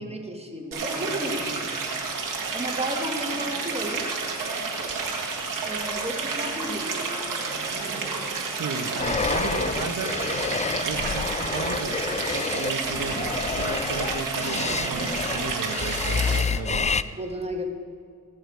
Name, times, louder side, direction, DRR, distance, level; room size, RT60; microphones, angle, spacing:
voice 1, 0.0-2.1 2.5-4.1 5.6-7.6 17.2-17.6, right 1 dB, 20° right, 2 dB, 2.0 m, -33 dB
Stream, 0.7-16.4, right 4 dB, 80° right, 1.9 m, -30 dB
voice 2, 8.6-10.1 10.8-12.0 12.3-16.9, right 4 dB, 65° right, 6 dB, 1.4 m, -34 dB
sound 1, 9.0-17.0, left 5 dB, 20° left, 0.4 m, -29 dB
19.5 x 6.5 x 4.9 m, 2.3 s
cardioid pair, 50°, 32 cm